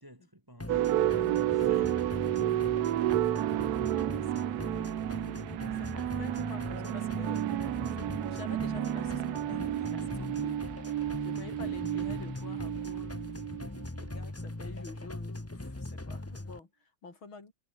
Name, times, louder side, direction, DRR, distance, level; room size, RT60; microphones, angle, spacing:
voice 1, 0.0-2.8 4.6-5.6, equal, 10° right, 2.4 m, -52 dB
sound 1, 0.6-16.6, left 2 dB, 20° left, 0.4 m, -40 dB
sound 2, 0.7-14.0, right 14 dB, 75° right, 0.9 m, -31 dB
voice 2, 3.9-4.7 5.2-5.5 5.8-7.4 7.8-10.6 11.2-13.3 13.9-17.5, left 4 dB, 70° left, 5.1 m, -48 dB
omnidirectional pair, 2.3 m